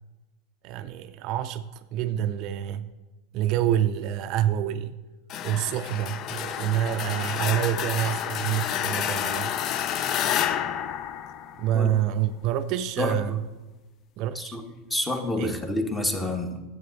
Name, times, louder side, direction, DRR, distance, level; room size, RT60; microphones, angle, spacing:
voice 1, 0.6-2.9 3.3-5.0 5.4-9.5 11.6-13.4 14.2-14.6 15.4-15.6, right 11 dB, 55° right, 10 dB, 0.4 m, -27 dB
sound 1, 5.3-12.0, left 10 dB, 45° left, 0.4 m, -29 dB
voice 2, 14.9-16.6, left 2 dB, 15° left, 5 dB, 1.4 m, -28 dB
10.5 x 7.9 x 4.1 m, 1.2 s
hypercardioid pair, 95°, 0 cm